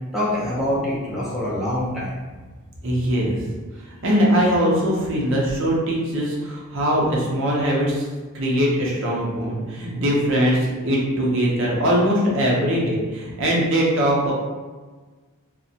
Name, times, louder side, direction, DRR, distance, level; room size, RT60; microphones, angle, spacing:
voice 1, 0.1-2.1, left 1 dB, ahead, -9 dB, 0.5 m, -25 dB
voice 2, 2.8-3.4 3.9-8.1 8.3-14.3, equal, 60° right, -4 dB, 0.6 m, -21 dB
2.5 x 2.0 x 2.7 m, 1.3 s
head